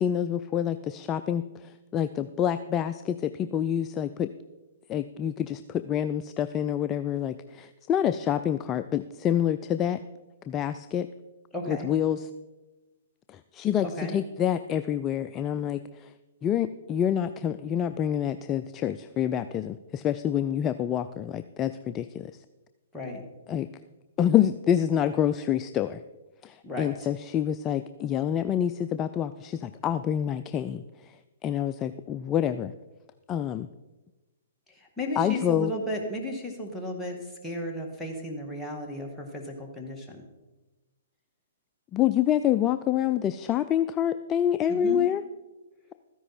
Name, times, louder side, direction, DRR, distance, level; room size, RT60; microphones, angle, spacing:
voice 1, 0.0-4.3 4.9-10.0 10.5-11.1 11.7-12.3 13.3-16.1 16.4-22.3 23.5-23.7 24.2-26.0 26.4-31.2 31.4-32.7 33.3-33.7 35.2-35.7 41.9-45.2, left 9 dB, 25° left, 11 dB, 0.4 m, -27 dB
voice 2, 11.5-11.9 13.8-14.1 22.9-23.2 26.6-27.1 35.0-37.2 37.4-40.2 44.7-45.0, left 1 dB, 5° left, -2 dB, 2.0 m, -34 dB
13.5 x 10.0 x 4.3 m, 1.1 s
hypercardioid pair, 130°, 0 cm